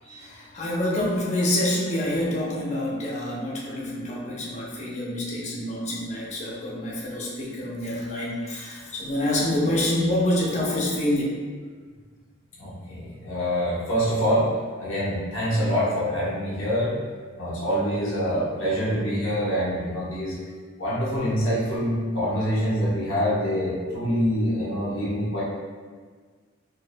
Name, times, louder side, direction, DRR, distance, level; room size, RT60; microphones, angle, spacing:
voice 1, 0.1-11.2, left 1 dB, 35° left, -5 dB, 0.7 m, -27 dB
voice 2, 12.6-14.5 14.8-17.0 17.4-20.4 20.8-25.4, equal, 85° left, -8 dB, 1.1 m, -25 dB
4.5 x 2.5 x 2.2 m, 1.6 s
head